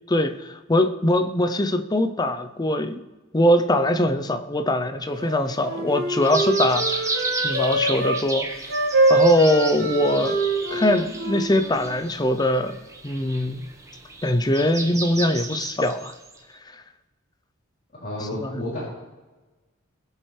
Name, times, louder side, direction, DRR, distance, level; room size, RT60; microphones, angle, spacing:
voice 1, 0.1-3.0 3.3-8.5 9.1-10.4 10.7-12.8 13.0-13.7 14.2-16.1 18.4-18.5, left 1 dB, 20° left, 9 dB, 0.6 m, -22 dB
Wind instrument woodwind instrument, 5.1-8.2 8.7-11.8, right 2 dB, 75° right, 2.0 m, -24 dB
sound 1, 6.2-16.4, right 3 dB, 15° right, 1.1 m, -33 dB
voice 2, 17.9-18.8, left 1 dB, 45° left, -7 dB, 3.2 m, -31 dB
20.0 x 7.6 x 3.3 m, 1.2 s
head